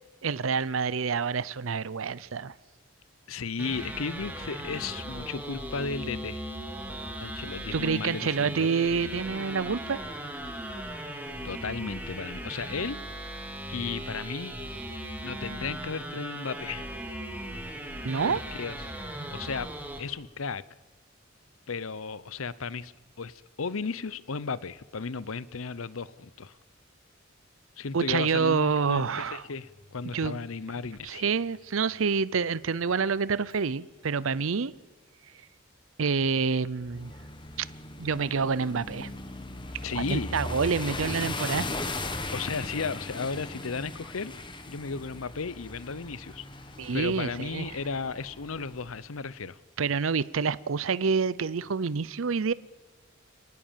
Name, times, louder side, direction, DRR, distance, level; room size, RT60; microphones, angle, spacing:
voice 1, 0.2-2.5 7.7-10.0 18.0-18.4 27.9-29.4 30.1-30.4 31.0-34.7 36.0-37.1 37.6-37.7 38.0-39.1 39.9-41.7 46.8-47.6 49.8-52.5, right 5 dB, 75° right, 0.6 m, -27 dB
voice 2, 3.3-6.4 7.2-8.7 11.4-13.0 13.7-14.5 15.2-16.9 18.2-18.8 19.3-19.7 20.0-20.6 21.7-22.9 23.2-26.6 27.8-31.2 39.8-40.5 42.3-44.3 44.7-46.5 46.9-49.6, left 4 dB, 85° left, 0.8 m, -34 dB
sound 1, 3.6-20.0, right 1 dB, 10° right, 2.8 m, -38 dB
Microwave oven, 29.4-34.0, left 1 dB, 45° left, 8.0 m, -62 dB
sound 2, 36.8-49.0, left 2 dB, 25° left, 1.5 m, -38 dB
25.5 x 19.0 x 7.4 m
head